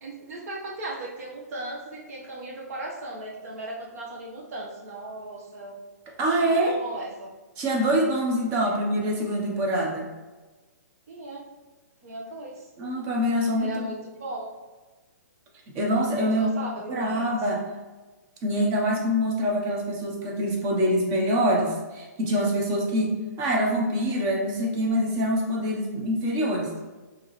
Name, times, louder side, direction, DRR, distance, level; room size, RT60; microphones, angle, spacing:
voice 1, 0.0-5.8 6.4-7.3 8.6-8.7 11.1-11.4 12.0-12.6 13.6-14.5 16.3-17.3, right 2 dB, 60° right, -2 dB, 1.3 m, -37 dB
voice 2, 6.2-6.8 7.6-10.1 12.8-13.9 15.7-16.5 16.9-17.6 18.4-26.7, equal, 30° right, 0 dB, 1.0 m, -25 dB
4.5 x 3.0 x 3.2 m, 1.2 s
hypercardioid pair, 135°, 9 cm